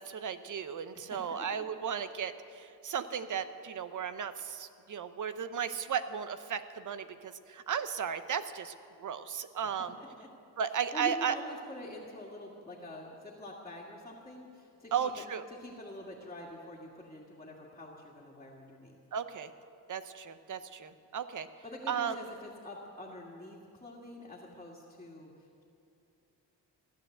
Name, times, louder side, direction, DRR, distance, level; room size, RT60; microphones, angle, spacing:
voice 1, 0.0-10.0 10.6-11.4 14.9-15.5 19.1-19.5 19.9-21.5 21.9-22.2, right 7 dB, 45° right, 11 dB, 0.8 m, -35 dB
voice 2, 0.9-1.6 10.0-10.3 10.9-18.9 21.6-25.6, left 1 dB, 15° left, -5 dB, 2.0 m, -46 dB
15.5 x 11.0 x 7.9 m, 2.6 s
cardioid pair, 125°, 42 cm